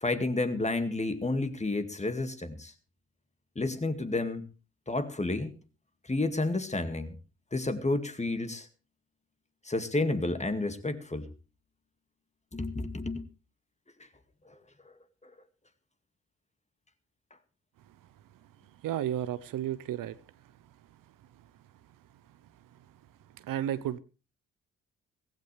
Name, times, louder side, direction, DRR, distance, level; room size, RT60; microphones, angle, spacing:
voice 1, 0.0-2.7 3.6-4.5 4.9-5.5 6.1-7.2 7.5-8.7 9.6-11.3 12.5-13.3 14.5-14.6 15.2-15.3, left 2 dB, 20° left, 2.1 m, -31 dB
voice 2, 18.8-20.2 23.4-24.0, right 11 dB, 70° right, 0.9 m, -32 dB
16.0 x 16.0 x 3.4 m
hypercardioid pair, 50°, 35 cm